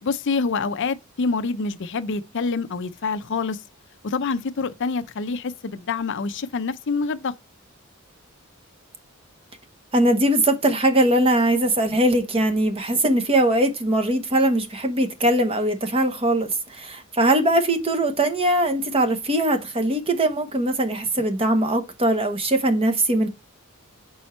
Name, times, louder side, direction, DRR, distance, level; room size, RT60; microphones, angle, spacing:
voice 1, 0.0-3.6 4.0-7.3, left 4 dB, 60° left, 0.6 m, -26 dB
voice 2, 9.9-23.3, right 1 dB, 25° right, 1.0 m, -21 dB
5.5 x 4.3 x 4.3 m
head